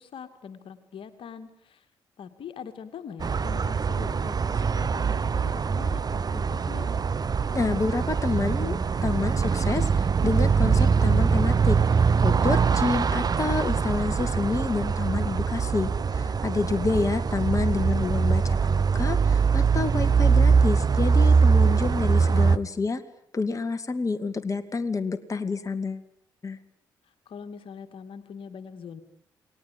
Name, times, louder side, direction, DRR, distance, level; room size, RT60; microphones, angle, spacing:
voice 1, 0.0-1.9 2.2-6.9 16.9-17.2 27.0-29.0, left 7 dB, 60° left, 8 dB, 2.4 m, -43 dB
sound 1, 3.2-22.6, right 5 dB, 40° right, 1.1 m, -23 dB
voice 2, 7.5-11.8 12.2-23.0 23.3-26.1 26.4-26.6, left 4 dB, 30° left, 8 dB, 2.4 m, -28 dB
29.5 x 20.0 x 9.4 m, 0.71 s
hypercardioid pair, 40°, 10 cm